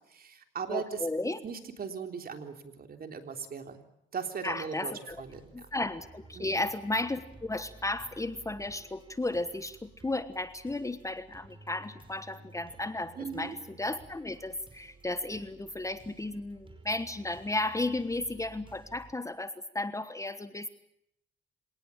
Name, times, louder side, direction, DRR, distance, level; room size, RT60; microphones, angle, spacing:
voice 1, 0.1-1.0 1.4-3.8 4.1-5.7 6.3-6.7 13.2-13.6, right 6 dB, 50° right, 7 dB, 3.6 m, -39 dB
voice 2, 0.7-1.4 4.4-5.2 5.5-20.7, left 2 dB, 15° left, 13 dB, 1.3 m, -34 dB
sound 1, 5.1-19.1, right 3 dB, 25° right, 5.1 m, -55 dB
27.0 x 18.5 x 8.6 m, 0.78 s
cardioid pair, 90°, 20 cm